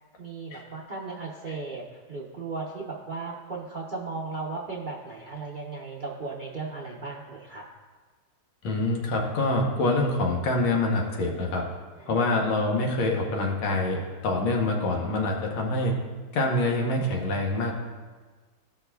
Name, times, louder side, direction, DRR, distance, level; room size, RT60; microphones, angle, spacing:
voice 1, 0.2-7.6 12.0-12.4, right 3 dB, 75° right, -5 dB, 0.4 m, -36 dB
voice 2, 8.6-11.6 12.1-15.9 16.3-17.7, left 2 dB, 85° left, 0 dB, 1.9 m, -25 dB
15.0 x 5.8 x 2.3 m, 1.4 s
omnidirectional pair, 2.2 m